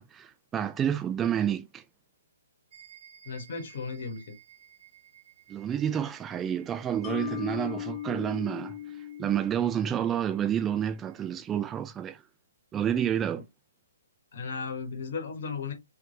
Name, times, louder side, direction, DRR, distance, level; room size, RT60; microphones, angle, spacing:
voice 1, 0.0-1.8 5.5-8.8 9.2-12.2 12.7-13.4, right 9 dB, 15° right, 0.3 m, -29 dB
sound 1, 2.7-11.4, right 10 dB, 45° right, 1.0 m, -58 dB
voice 2, 3.2-4.3 13.3-13.4 14.3-15.7, left 5 dB, 55° left, 1.3 m, -35 dB
Mallet percussion, 7.0-10.3, left 11 dB, 20° left, 0.6 m, -38 dB
3.2 x 3.2 x 2.7 m
figure-of-eight pair, 130°, 0 cm